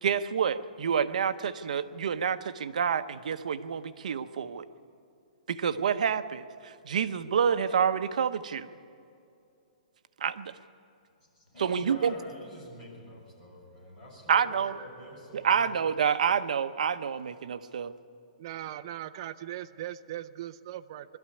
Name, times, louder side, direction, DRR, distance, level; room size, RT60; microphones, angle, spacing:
voice 1, 0.0-4.6 5.5-8.7 10.2-10.5 11.6-12.1 14.3-14.7 15.3-17.9, right 7 dB, 65° right, 11 dB, 0.8 m, -28 dB
voice 2, 11.3-15.8, equal, 15° left, -6 dB, 6.2 m, -47 dB
voice 3, 18.4-21.2, right 12 dB, 30° right, 7 dB, 0.5 m, -39 dB
21.0 x 13.0 x 9.7 m, 2.5 s
hypercardioid pair, 175°, 4 cm